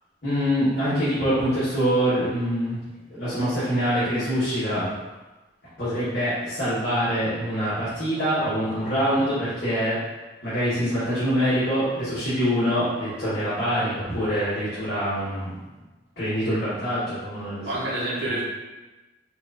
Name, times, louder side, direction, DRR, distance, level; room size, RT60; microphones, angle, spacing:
voice 1, 0.2-2.8 3.1-4.9 5.8-10.0 10.4-15.5 16.2-17.8 18.2-18.3, equal, 60° left, -13 dB, 1.2 m, -25 dB
voice 2, 8.9-9.3 17.7-18.4, right 1 dB, 65° right, -8 dB, 1.0 m, -29 dB
4.6 x 2.5 x 2.6 m, 1.2 s
head